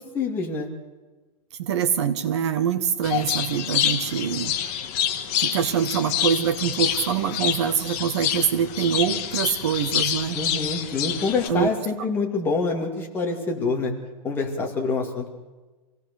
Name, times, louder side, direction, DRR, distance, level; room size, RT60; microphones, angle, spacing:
voice 1, 0.1-0.7 10.3-13.9 14.2-15.3, left 4 dB, 10° left, 0 dB, 2.2 m, -26 dB
voice 2, 1.6-4.6 5.4-10.4 11.5-11.7, right 8 dB, 50° right, 10 dB, 1.5 m, -24 dB
sound 1, 3.0-11.5, left 10 dB, 25° left, 1.3 m, -27 dB
26.5 x 17.5 x 6.7 m, 1.2 s
supercardioid pair, 175°, 19 cm